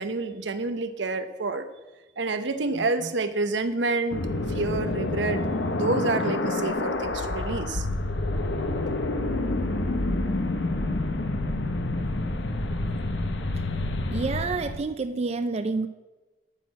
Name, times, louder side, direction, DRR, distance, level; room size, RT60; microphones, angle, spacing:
voice 1, 0.0-1.7 2.2-4.2 4.5-5.4 5.7-7.9, right 3 dB, 85° right, 9 dB, 0.8 m, -28 dB
sound 1, 4.1-14.8, left 2 dB, 90° left, 0.9 m, -28 dB
voice 2, 14.1-15.9, right 3 dB, 35° right, 10 dB, 0.4 m, -28 dB
8.9 x 6.3 x 7.5 m, 1.2 s
head